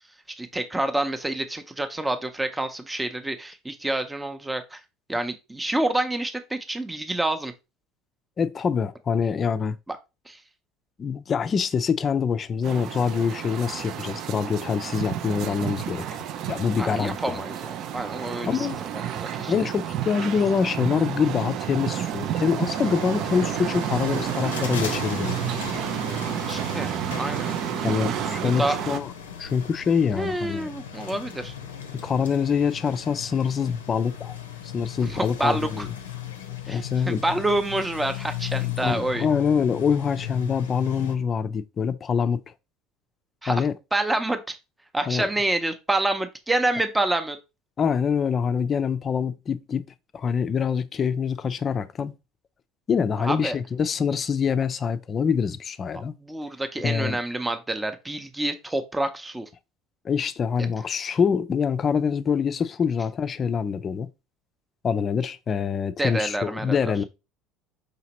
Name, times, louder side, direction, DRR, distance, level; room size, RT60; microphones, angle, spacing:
voice 1, 0.4-4.8 5.1-7.5 9.9-10.0 10.3-10.4 16.8-19.5 26.5-27.5 28.6-28.8 30.1-31.5 35.0-35.9 36.7-39.3 43.4-43.6 43.9-44.6 44.9-47.4 53.2-53.6 56.2-59.5 66.0-66.9, right 2 dB, 10° right, 0.6 m, -28 dB
voice 2, 8.4-9.8 11.0-16.1 16.5-17.4 18.5-18.8 19.5-25.4 27.8-29.1 29.4-30.7 32.0-34.3 34.7-35.9 36.7-37.2 38.8-42.4 43.5-43.7 45.1-45.3 47.8-49.9 50.1-52.1 52.9-56.1 56.8-57.2 60.0-64.1 64.8-67.0, left 6 dB, 35° left, 0.4 m, -25 dB
sound 1, 12.6-29.0, right 10 dB, 55° right, 0.4 m, -30 dB
sound 2, 22.6-41.2, left 9 dB, 85° left, 0.5 m, -36 dB
5.0 x 2.9 x 2.9 m
hypercardioid pair, 70°, 0 cm